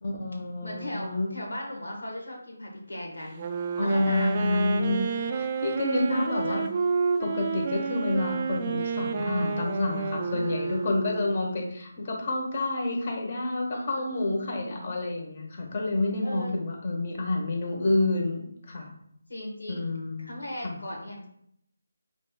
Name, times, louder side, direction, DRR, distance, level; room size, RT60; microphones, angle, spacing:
voice 1, 0.0-1.3 3.8-6.6 7.2-18.9 19.7-20.3 20.6-20.8, left 2 dB, 40° left, 1 dB, 1.1 m, -29 dB
voice 2, 0.6-3.4 3.8-4.6 6.1-6.6 10.3-11.0 13.7-14.9 16.2-16.5 19.3-19.8 20.2-21.3, left 1 dB, 80° left, -1 dB, 1.5 m, -38 dB
Wind instrument woodwind instrument, 3.3-11.4, right 5 dB, 30° right, 0.4 m, -30 dB
5.1 x 3.2 x 2.4 m, 0.70 s
figure-of-eight pair, 160°, 0 cm